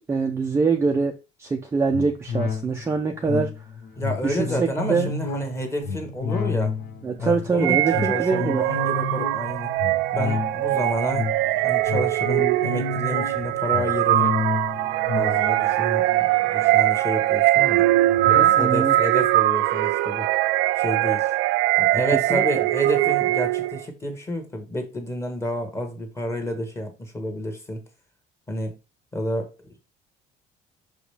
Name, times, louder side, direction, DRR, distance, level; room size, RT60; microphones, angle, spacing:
voice 1, 0.1-1.1 1.4-3.5 4.2-5.1 7.0-8.6 18.3-18.9 22.3-22.6, right 4 dB, 15° right, 0.5 m, -24 dB
sound 1, 1.9-17.6 18.1-18.2, left 5 dB, 65° left, 1.3 m, -31 dB
voice 2, 3.9-6.8 7.2-9.8 10.1-14.3 15.1-17.9 18.2-20.3 20.8-21.3 21.8-27.8 28.5-28.7 29.1-29.7, equal, 15° left, 1.4 m, -30 dB
sound 2, 7.6-23.8, right 15 dB, 75° right, 0.4 m, -22 dB
6.3 x 5.0 x 3.3 m
cardioid pair, 175°, 19 cm